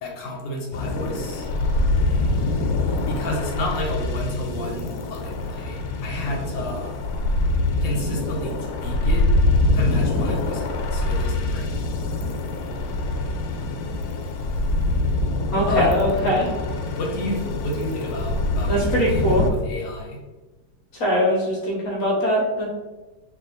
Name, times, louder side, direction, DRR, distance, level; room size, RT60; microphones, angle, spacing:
voice 1, 0.0-1.5 3.1-7.0 7.8-9.2 9.7-11.7 15.7-15.9 16.2-16.3 17.0-20.2, left 1 dB, 70° left, -1 dB, 1.3 m, -31 dB
sound 1, 0.7-19.5, left 2 dB, 90° left, 1.4 m, -24 dB
voice 2, 15.5-16.4 18.7-19.4 21.0-22.7, equal, 55° left, -3 dB, 1.2 m, -21 dB
3.3 x 2.7 x 3.8 m, 1.2 s
omnidirectional pair, 2.2 m